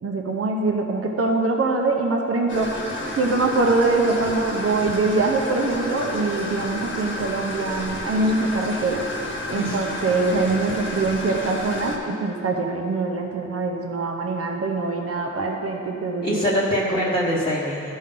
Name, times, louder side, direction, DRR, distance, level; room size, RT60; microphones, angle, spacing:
voice 1, 0.0-2.8 3.2-9.0 9.5-16.6, right 3 dB, 50° right, 1 dB, 0.9 m, -23 dB
sound 1, 2.5-12.0, left 1 dB, 40° left, 1.2 m, -31 dB
voice 2, 16.2-18.0, equal, 15° left, -8 dB, 1.1 m, -23 dB
13.5 x 5.3 x 3.8 m, 2.7 s
wide cardioid pair, 115°, 29 cm